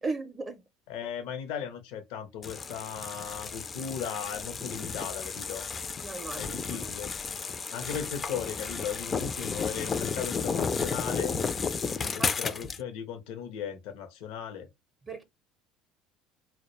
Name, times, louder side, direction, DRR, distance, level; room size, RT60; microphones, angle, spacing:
voice 1, 0.0-0.6 6.0-6.9 12.0-12.5 15.0-15.2, right 3 dB, 30° right, 0.5 m, -37 dB
voice 2, 0.9-5.7 6.3-7.1 7.7-11.4 11.9-14.7, left 8 dB, 75° left, 0.6 m, -37 dB
sound 1, 2.4-12.8, left 5 dB, 30° left, 0.3 m, -33 dB
2.3 x 2.1 x 2.9 m
supercardioid pair, 90°, 0 cm